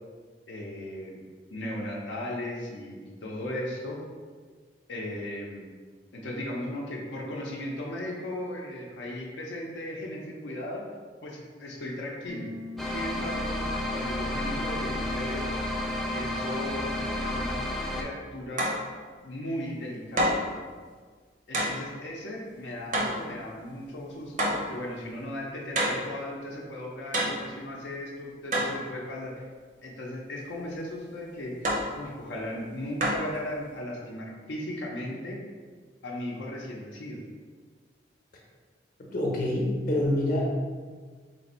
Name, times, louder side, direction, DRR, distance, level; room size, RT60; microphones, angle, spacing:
voice 1, 0.5-1.2 1.5-4.0 4.9-5.7 6.1-10.8 11.2-12.5 12.9-13.6 13.9-15.5 16.1-16.9 17.2-17.6 18.0-18.7 19.2-20.4 21.5-29.4 29.8-31.5 31.9-35.4 36.0-37.2, left 1 dB, 85° left, -3 dB, 0.6 m, -36 dB
sound 1, 12.3-17.5, left 2 dB, 80° right, 0.9 m, -37 dB
sound 2, 12.8-18.0, left 1 dB, ahead, 0.3 m, -32 dB
sound 3, 18.6-18.9 20.2-20.5 21.5-21.8 22.9-23.3 24.4-24.7 25.8-26.1 27.1-27.5 28.5-28.8 31.6-31.9 33.0-33.3, equal, 45° right, 0.6 m, -27 dB
voice 2, 39.0-40.4, left 1 dB, 50° left, -2 dB, 0.7 m, -26 dB
3.3 x 2.6 x 4.2 m, 1.5 s
head